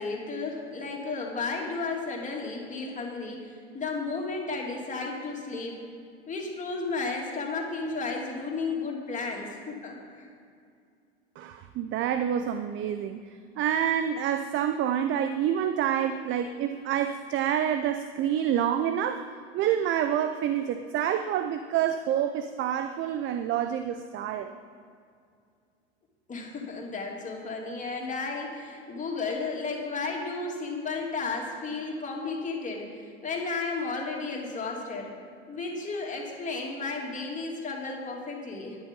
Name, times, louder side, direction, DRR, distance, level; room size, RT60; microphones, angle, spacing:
voice 1, 0.0-5.8 6.3-10.3 26.3-35.1 35.5-38.8, left 3 dB, 20° left, -1 dB, 2.9 m, -33 dB
voice 2, 11.4-13.3 13.6-19.3 19.5-24.5, right 9 dB, 35° right, 9 dB, 0.6 m, -27 dB
12.5 x 10.5 x 5.4 m, 2.3 s
hypercardioid pair, 90°, 33 cm